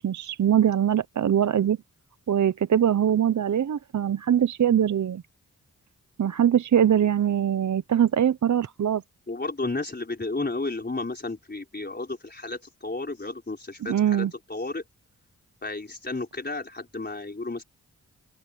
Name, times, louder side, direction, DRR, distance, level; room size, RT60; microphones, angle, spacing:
voice 1, 0.0-1.8 2.3-5.2 6.2-9.0 13.8-14.3, right 9 dB, 60° right, 0.7 m, -22 dB
voice 2, 9.3-14.8 15.6-17.6, left 2 dB, 30° left, 4.4 m, -32 dB
cardioid pair, 50°, 33 cm